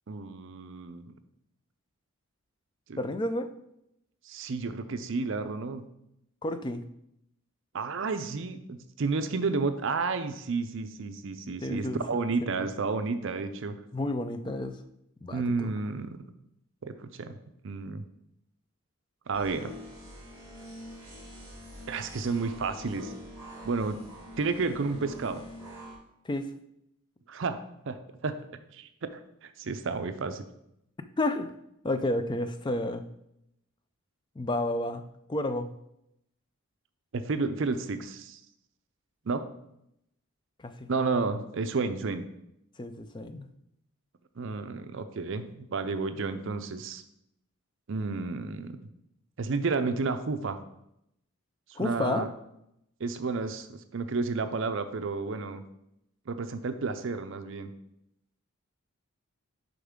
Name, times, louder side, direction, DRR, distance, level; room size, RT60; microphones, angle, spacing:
voice 1, 0.1-1.1 2.9-3.0 4.3-5.9 7.7-13.8 15.3-16.2 16.8-17.4 17.6-18.0 19.3-19.7 21.9-23.1 23.6-24.0 24.4-25.4 27.3-27.6 27.9-28.0 28.2-28.4 28.7-30.5 37.1-38.4 39.3-39.5 40.9-42.2 44.4-47.0 47.9-48.8 49.4-50.6 51.8-52.3 53.0-55.6 56.3-57.7, right 4 dB, 60° right, 10 dB, 0.5 m, -31 dB
voice 2, 3.0-3.5 6.4-6.8 11.6-12.6 13.9-14.8 15.2-15.7 26.3-26.5 31.2-31.5 31.8-33.0 34.4-35.0 35.3-35.7 40.6-40.9 42.8-43.5 51.8-52.3, left 1 dB, 20° left, 9 dB, 0.3 m, -31 dB
sound 1, 19.3-26.0, left 1 dB, 15° right, 2.0 m, -45 dB
6.8 x 5.1 x 3.7 m, 0.80 s
head